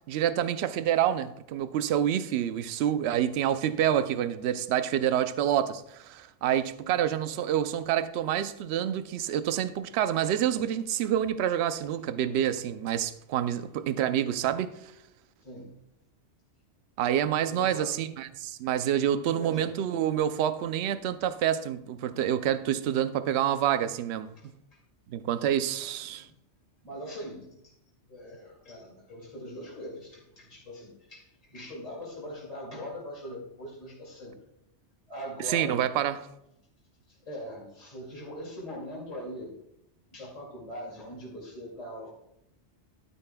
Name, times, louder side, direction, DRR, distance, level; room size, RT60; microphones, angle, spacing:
voice 1, 0.1-14.9 17.0-24.3 25.1-26.3 35.4-36.3, right 10 dB, 70° right, 0.8 m, -27 dB
voice 2, 15.4-15.8 17.5-18.0 19.3-19.8 24.4-24.8 25.8-26.4 26.8-27.7 28.1-34.4 35.1-36.1 37.1-39.6 40.1-42.1, equal, 30° left, 2.5 m, -42 dB
12.0 x 9.3 x 2.3 m
omnidirectional pair, 1.2 m